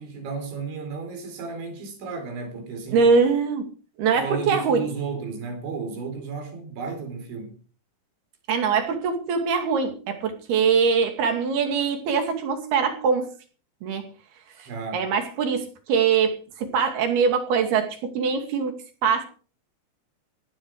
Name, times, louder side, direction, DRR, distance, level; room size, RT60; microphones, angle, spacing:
voice 1, 0.0-3.1 4.1-7.5 14.7-15.1, right 4 dB, 85° right, 6.5 m, -33 dB
voice 2, 2.9-3.7 4.0-4.9 8.5-13.3 13.8-14.0 14.6-18.7 19.0-19.2, right 5 dB, 60° right, 4.3 m, -23 dB
17.0 x 15.5 x 4.9 m
omnidirectional pair, 5.2 m